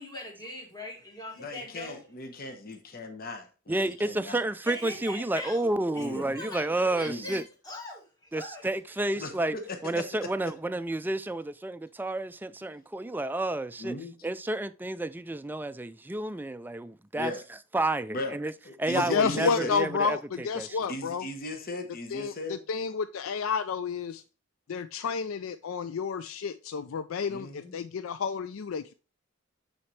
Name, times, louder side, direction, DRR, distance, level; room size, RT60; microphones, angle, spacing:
voice 1, 0.0-2.0 4.7-5.6 5.9-8.7, left 1 dB, 20° left, 2.2 m, -41 dB
voice 2, 1.4-4.4 6.0-6.3 7.0-7.3 9.2-10.5 13.8-14.1 17.2-17.4 18.1-18.4 18.6-19.7 20.9-22.6 27.3-27.7, left 1 dB, 45° left, 1.0 m, -38 dB
voice 3, 3.7-7.4 8.3-9.5 9.8-13.9 14.2-17.3 17.7-18.5 18.8-20.8, right 2 dB, 10° right, 0.3 m, -30 dB
voice 4, 19.1-21.3 22.1-22.3 22.7-24.2 24.7-28.9, left 5 dB, 85° left, 0.4 m, -30 dB
8.6 x 4.3 x 3.2 m
head